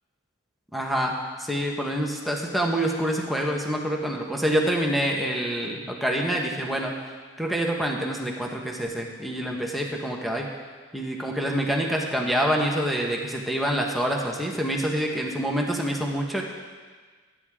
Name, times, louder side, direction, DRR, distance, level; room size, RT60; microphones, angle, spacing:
voice 1, 0.7-6.9 7.4-10.5 10.9-16.4, equal, ahead, -1 dB, 1.3 m, -26 dB
21.0 x 10.0 x 3.7 m, 1.5 s
head